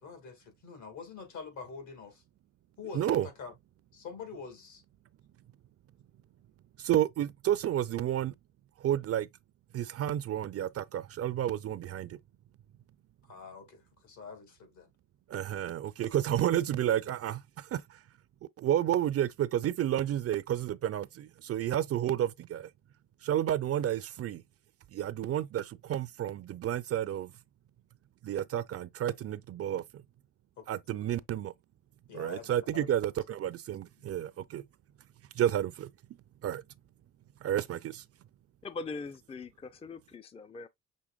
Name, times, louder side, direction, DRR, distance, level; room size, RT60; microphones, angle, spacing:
voice 1, 0.0-2.2 2.8-3.5 3.9-4.8 13.2-14.9 30.6-30.8 32.1-32.9 34.0-34.1, left 5 dB, 70° left, 2.4 m, -45 dB
voice 2, 2.9-3.3 6.8-8.3 8.8-9.3 9.7-12.2 15.3-17.8 18.6-22.7 23.2-24.4 24.9-27.3 28.2-29.8 30.7-31.5 32.1-34.6 35.4-35.9 36.4-36.6 37.4-38.0, right 11 dB, 50° right, 0.5 m, -31 dB
voice 3, 38.6-40.7, left 3 dB, 20° left, 0.5 m, -41 dB
6.2 x 3.3 x 2.4 m
cardioid pair, 90°, 30 cm